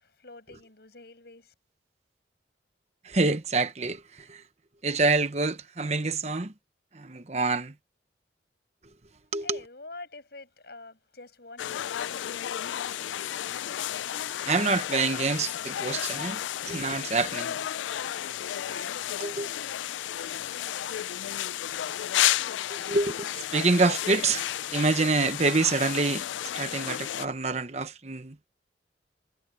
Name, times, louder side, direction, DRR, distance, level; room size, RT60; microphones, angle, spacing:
voice 1, 0.0-1.5 9.4-12.4 18.6-21.1, left 3 dB, 60° left, 6.4 m, -47 dB
voice 2, 3.0-4.4 4.8-6.5 6.9-7.7 9.3-9.6 14.4-17.6 19.2-19.5 22.7-28.4, right 3 dB, 35° right, 0.9 m, -27 dB
sound 1, 11.6-27.3, left 12 dB, 85° left, 0.3 m, -32 dB
head